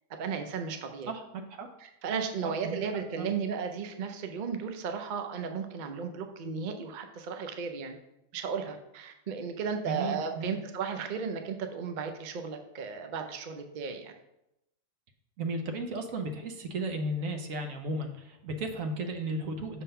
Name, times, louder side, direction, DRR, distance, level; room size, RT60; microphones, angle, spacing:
voice 1, 0.2-1.1 1.8-8.0 8.3-14.1, right 6 dB, 85° right, 6 dB, 0.4 m, -35 dB
voice 2, 1.1-1.7 2.4-2.8 3.2-3.3 9.9-10.6 15.4-19.8, right 2 dB, 60° right, 5 dB, 1.1 m, -34 dB
6.4 x 3.7 x 5.5 m, 0.87 s
omnidirectional pair, 1.7 m